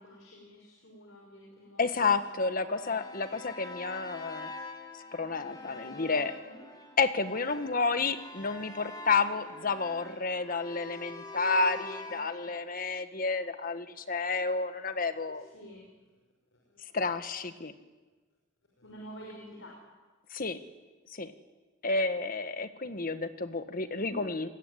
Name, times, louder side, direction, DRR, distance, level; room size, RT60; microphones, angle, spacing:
voice 1, 0.0-2.0 2.3-3.1 6.4-6.7 12.0-12.5 14.8-14.9 15.3-15.9 16.5-17.0 18.8-19.8 24.0-24.3, equal, 70° left, -1 dB, 5.9 m, -50 dB
voice 2, 1.8-4.5 5.1-6.3 7.0-15.4 16.9-17.7 20.3-20.6 21.1-21.3 21.8-24.5, left 4 dB, 45° left, 10 dB, 1.5 m, -30 dB
sound 1, 2.2-12.6, left 2 dB, 20° left, 2.7 m, -45 dB
27.0 x 21.5 x 9.9 m, 1.3 s
head